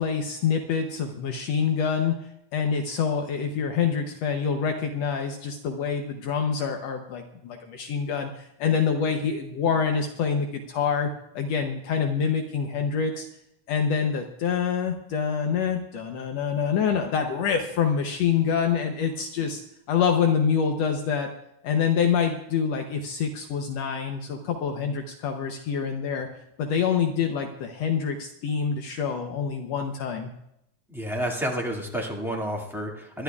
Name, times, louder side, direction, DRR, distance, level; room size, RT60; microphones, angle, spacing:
voice 1, 0.0-2.2 2.5-13.3 13.7-19.6 19.9-21.3 21.6-26.3 26.6-30.3, left 6 dB, 70° left, 4 dB, 1.9 m, -26 dB
voice 2, 30.9-33.2, equal, ahead, -2 dB, 1.3 m, -30 dB
25.5 x 11.5 x 2.4 m, 0.79 s
omnidirectional pair, 3.3 m